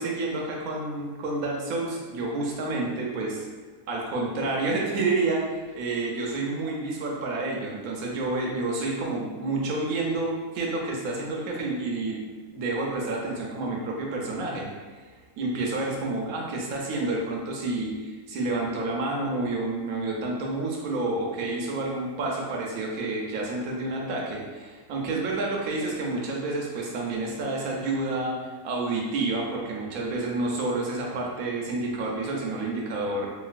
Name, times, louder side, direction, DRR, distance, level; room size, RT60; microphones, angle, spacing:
voice 1, 0.0-3.5 3.9-15.0 15.4-33.3, right 2 dB, 70° right, -2 dB, 1.0 m, -29 dB
3.0 x 2.5 x 2.4 m, 1.3 s
omnidirectional pair, 1.7 m